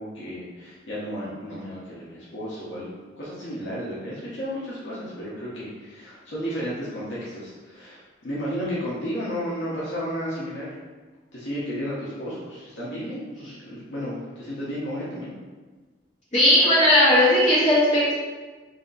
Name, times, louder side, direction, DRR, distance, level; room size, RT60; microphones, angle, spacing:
voice 1, 0.0-2.9 3.2-10.7 11.3-15.3, equal, 75° left, -8 dB, 0.9 m, -33 dB
voice 2, 16.3-18.1, left 1 dB, 40° left, -9 dB, 1.4 m, -17 dB
3.3 x 2.8 x 4.0 m, 1.3 s
head